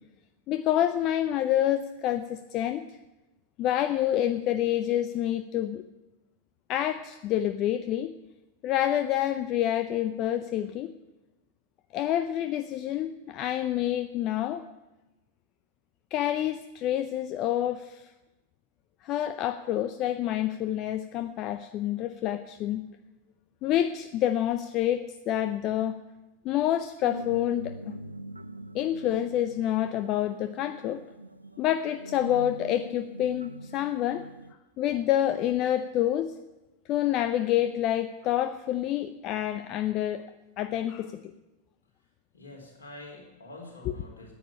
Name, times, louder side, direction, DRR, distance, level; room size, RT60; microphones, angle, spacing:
voice 1, 0.5-2.9 3.6-5.8 6.7-8.1 8.6-10.9 11.9-14.6 16.1-18.1 19.0-22.8 23.6-26.0 26.4-27.9 28.7-31.0 31.6-34.3 34.8-36.3 36.9-40.2 40.6-41.3, left 12 dB, 35° left, 11 dB, 0.6 m, -28 dB
sound 1, 27.0-34.5, right 1 dB, 85° right, 0.4 m, -43 dB
voice 2, 42.0-44.3, left 2 dB, 70° left, 0 dB, 4.0 m, -47 dB
10.0 x 9.2 x 9.9 m, 1.0 s
figure-of-eight pair, 90°, 0 cm